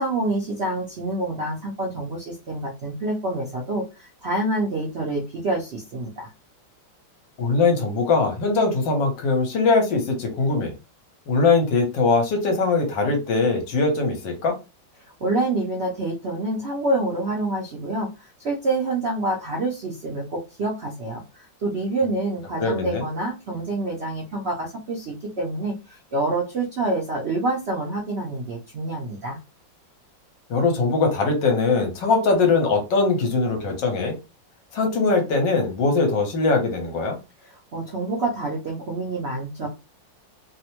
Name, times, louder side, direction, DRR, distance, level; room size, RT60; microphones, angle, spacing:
voice 1, 0.0-6.3 15.2-18.1 18.4-29.4 37.4-39.7, right 2 dB, 90° right, -1 dB, 0.5 m, -27 dB
voice 2, 7.4-10.7 11.3-14.6 22.6-23.0 30.5-34.1 34.7-37.2, left 3 dB, 75° left, 3 dB, 1.5 m, -21 dB
3.4 x 2.1 x 2.9 m, 0.28 s
omnidirectional pair, 2.1 m